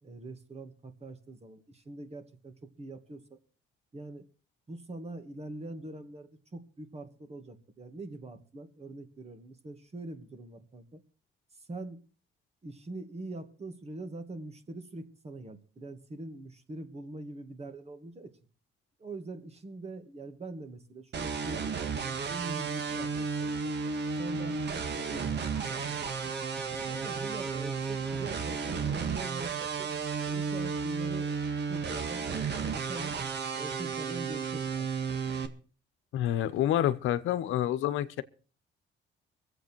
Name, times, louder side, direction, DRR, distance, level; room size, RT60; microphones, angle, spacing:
voice 1, 0.0-3.4 3.9-4.2 4.7-11.0 11.5-12.0 12.6-18.4 19.0-23.8 24.2-26.3 26.9-29.9 30.2-31.4 31.7-33.2 33.6-34.9, right 2 dB, 30° right, 2.2 m, -43 dB
sound 1, 21.1-35.5, right 5 dB, 60° right, 1.8 m, -33 dB
voice 2, 36.1-38.2, left 12 dB, 85° left, 0.9 m, -28 dB
23.5 x 8.1 x 4.6 m
cardioid pair, 90°, 20 cm